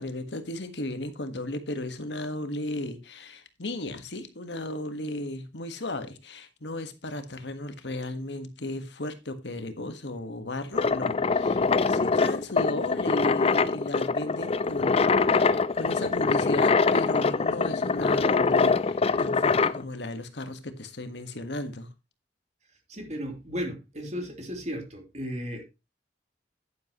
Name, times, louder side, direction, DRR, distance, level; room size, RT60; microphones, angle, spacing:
voice 1, 0.0-21.9, left 1 dB, 70° left, 1.5 m, -35 dB
sound 1, 10.7-19.8, left 4 dB, 35° left, 0.5 m, -24 dB
voice 2, 22.9-25.7, equal, 40° right, 3.1 m, -35 dB
10.5 x 9.7 x 3.0 m
head